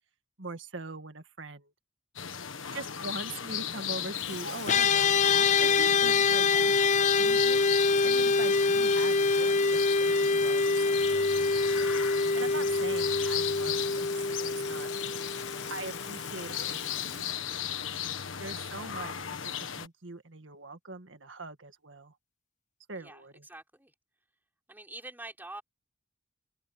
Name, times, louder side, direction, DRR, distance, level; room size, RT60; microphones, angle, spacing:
voice 1, 0.4-1.7 2.7-6.5 7.0-14.9 15.7-17.2 18.4-22.1 22.9-23.5, right 3 dB, 65° right, 1.9 m, -42 dB
sound 1, 2.2-19.9, left 8 dB, 80° left, 1.5 m, -36 dB
Water tap faucet / Sink (filling or washing), 4.1-17.9, left 12 dB, 60° left, 3.0 m, -45 dB
sound 2, 4.7-16.1, left 4 dB, 40° left, 0.5 m, -25 dB
voice 2, 6.4-6.8 18.7-19.0 23.0-23.9 24.7-25.6, right 2 dB, 10° right, 4.8 m, -46 dB
open air
head